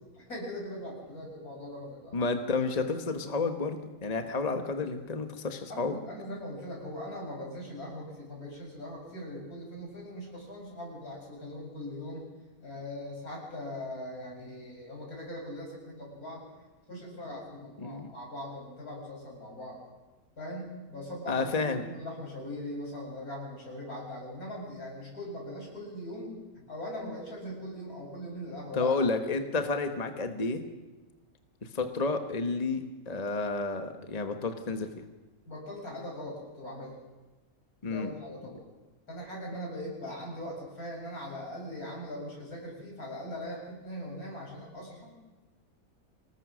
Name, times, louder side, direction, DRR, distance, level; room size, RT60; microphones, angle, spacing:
voice 1, 0.2-2.2 5.7-12.3 12.6-16.4 16.9-19.8 20.4-28.9 35.5-36.9 37.9-38.6 39.1-45.1, left 1 dB, 80° left, -1 dB, 7.9 m, -40 dB
voice 2, 2.1-6.0 17.8-18.1 21.3-21.8 28.7-30.6 31.6-34.9 37.8-38.1, left 3 dB, 30° left, 7 dB, 1.3 m, -30 dB
26.0 x 19.5 x 6.3 m, 1.2 s
omnidirectional pair, 1.5 m